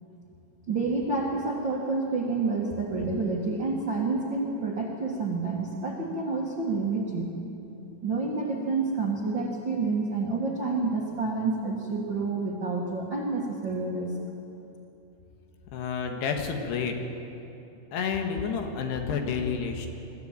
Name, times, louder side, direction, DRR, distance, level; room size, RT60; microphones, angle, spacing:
voice 1, 0.7-7.3 8.0-14.1, right 3 dB, 50° right, -3 dB, 1.5 m, -29 dB
voice 2, 15.7-17.0 17.9-19.9, left 6 dB, 75° left, 4 dB, 3.6 m, -29 dB
23.0 x 14.5 x 8.9 m, 2.9 s
omnidirectional pair, 4.9 m